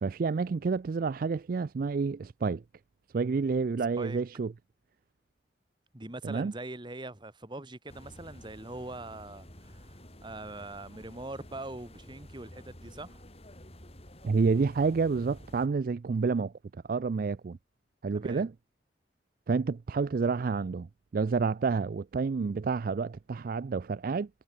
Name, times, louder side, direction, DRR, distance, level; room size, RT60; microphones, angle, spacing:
voice 1, 0.0-2.6 3.1-4.5 6.2-6.5 14.2-16.5 16.9-17.6 18.0-18.5 19.5-20.9 21.1-24.3, right 4 dB, 50° right, 0.4 m, -29 dB
voice 2, 5.9-13.2 18.1-18.4, right 2 dB, 25° right, 1.5 m, -42 dB
sound 1, 7.9-15.7, left 1 dB, 35° left, 7.1 m, -51 dB
head